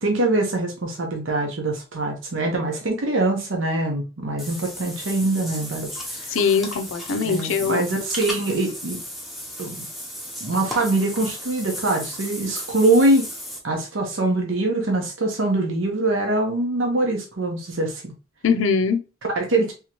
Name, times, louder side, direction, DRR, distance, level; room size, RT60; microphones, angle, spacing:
voice 1, 0.0-5.9 6.1-6.4 7.2-9.0 9.6-9.9 10.4-13.3 13.6-18.1 19.3-19.7, right 2 dB, 80° right, 2 dB, 0.9 m, -23 dB
Water / Bathtub (filling or washing), 4.4-13.6, equal, ahead, 0.7 m, -35 dB
voice 2, 6.3-7.8 18.4-19.0, left 5 dB, 85° left, 8 dB, 0.5 m, -21 dB
3.6 x 2.8 x 2.9 m, 0.32 s
head